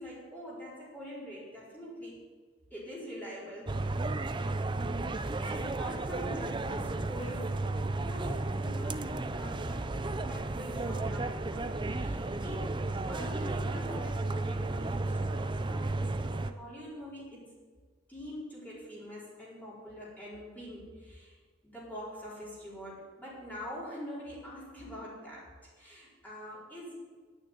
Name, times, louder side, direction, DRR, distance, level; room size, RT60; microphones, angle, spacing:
voice 1, 0.0-2.2 2.7-3.9 5.0-12.8 13.1-17.5 18.1-21.4 21.6-25.5 25.8-26.9, equal, 10° left, -8 dB, 4.5 m, -44 dB
sound 1, 3.7-16.5, right 2 dB, 20° right, 0.5 m, -33 dB
10.5 x 9.3 x 9.1 m, 1.5 s
head